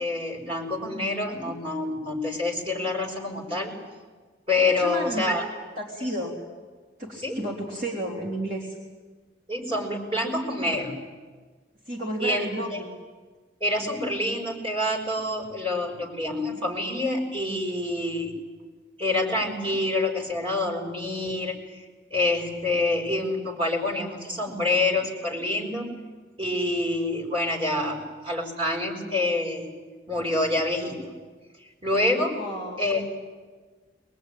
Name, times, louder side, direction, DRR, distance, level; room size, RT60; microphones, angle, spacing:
voice 1, 0.0-3.7 4.5-5.5 7.2-7.4 9.5-11.0 12.2-12.8 13.6-18.3 19.0-21.8 22.1-25.9 26.4-29.7 30.1-31.1 31.8-32.4 32.8-33.0, left 2 dB, 30° right, -2 dB, 5.5 m, -27 dB
voice 2, 4.7-5.4 5.8-6.4 7.0-8.8 11.9-12.9 32.3-32.8, equal, 45° right, -3 dB, 3.5 m, -32 dB
23.5 x 22.0 x 9.2 m, 1.4 s
head